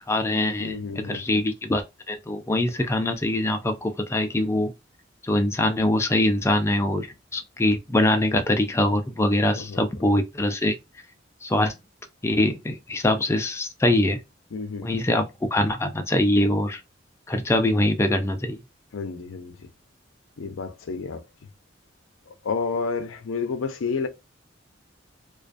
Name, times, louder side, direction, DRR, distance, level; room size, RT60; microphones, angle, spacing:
voice 1, 0.1-4.7 5.2-7.1 7.3-10.8 11.4-11.7 12.2-14.2 14.8-16.8 17.3-18.6, left 1 dB, 15° left, 0.4 m, -23 dB
voice 2, 0.6-1.2 9.5-9.8 14.5-14.9 18.9-19.7 20.4-21.2 22.3-24.1, left 5 dB, 85° left, 0.5 m, -30 dB
2.4 x 2.2 x 2.4 m
head